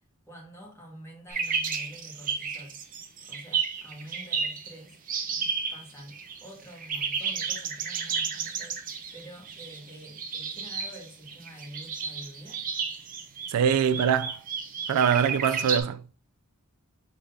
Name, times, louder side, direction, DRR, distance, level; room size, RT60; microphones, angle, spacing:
voice 1, 0.3-2.8 3.2-5.0 5.7-8.8 9.1-12.6, equal, 10° left, 1.6 m, -47 dB
sound 1, 1.3-4.7 5.1-6.5 6.7-15.8, right 5 dB, 40° right, 0.7 m, -32 dB
voice 2, 13.5-14.4 14.9-16.0, right 7 dB, 90° right, 0.3 m, -23 dB
4.9 x 3.8 x 2.6 m
head